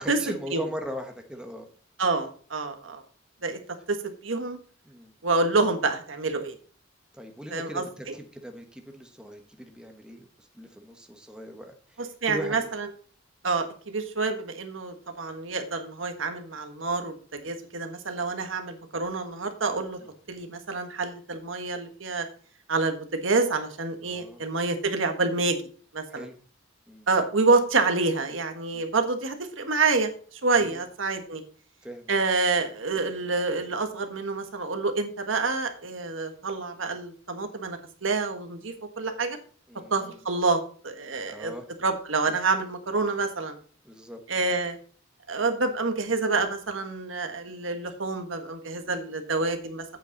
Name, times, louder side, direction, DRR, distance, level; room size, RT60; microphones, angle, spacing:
voice 1, 0.0-1.7 4.8-5.1 7.1-12.7 20.0-20.1 24.0-24.4 26.1-26.3 26.9-27.1 28.7-28.8 30.5-30.8 31.8-32.1 39.7-40.2 41.2-41.7 43.8-44.2, equal, 5° right, 4 dB, 1.2 m, -40 dB
voice 2, 2.0-3.0 3.4-3.6 3.9-4.6 5.2-6.6 7.5-7.8 12.2-12.9 13.4-20.0 20.3-22.2 22.7-25.6 25.9-26.2 27.1-30.1 30.4-31.4 32.1-39.4 39.9-41.5 41.8-43.5 44.3-44.8 45.3-49.8, right 3 dB, 80° right, 6 dB, 1.5 m, -27 dB
8.3 x 8.2 x 4.0 m, 0.43 s
head